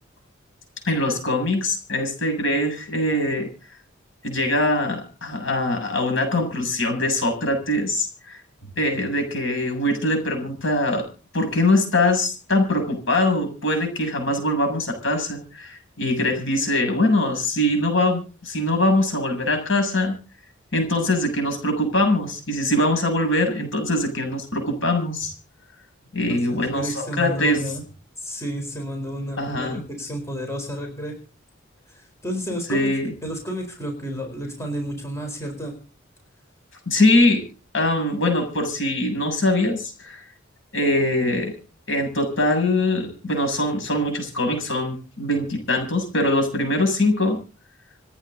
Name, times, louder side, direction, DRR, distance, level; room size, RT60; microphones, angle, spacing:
voice 1, 0.9-3.5 4.2-8.4 8.8-11.1 11.3-20.1 20.7-25.3 26.1-27.6 29.4-29.8 32.7-33.1 36.9-37.4 37.7-40.2 40.7-41.5 41.9-47.4, left 1 dB, 65° left, 5 dB, 7.4 m, -22 dB
voice 2, 26.3-27.8 28.2-31.2 31.9-32.9 33.2-35.7, right 1 dB, 15° left, 3 dB, 4.4 m, -31 dB
28.5 x 9.8 x 4.0 m, 0.36 s
head